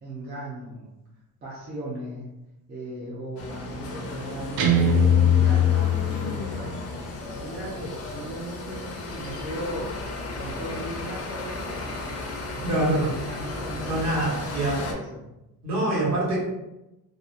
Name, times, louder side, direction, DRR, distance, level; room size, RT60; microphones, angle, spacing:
voice 1, 0.0-0.9 1.4-2.3 2.7-6.8 7.4-9.9 10.3-12.1 12.4-15.2, right 1 dB, 25° right, -7 dB, 0.4 m, -38 dB
sound 1, 3.4-14.9, left 2 dB, 45° left, 0.5 m, -34 dB
Guitar, 4.6-6.6, left 4 dB, 80° right, 0.5 m, -20 dB
voice 2, 12.6-13.1 13.9-14.8 15.6-16.4, right 1 dB, 50° right, -6 dB, 1.2 m, -24 dB
2.6 x 2.0 x 2.4 m, 0.94 s
cardioid pair, 170°, 36 cm